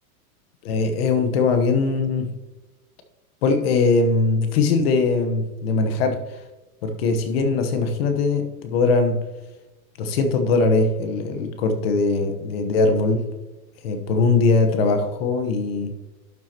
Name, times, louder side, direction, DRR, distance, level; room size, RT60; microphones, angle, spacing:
voice 1, 0.6-2.3 3.4-6.2 6.8-9.2 10.0-13.2 13.8-15.9, left 3 dB, 45° left, 7 dB, 1.1 m, -21 dB
12.0 x 7.5 x 2.9 m, 1.1 s
supercardioid pair, 175°, 43 cm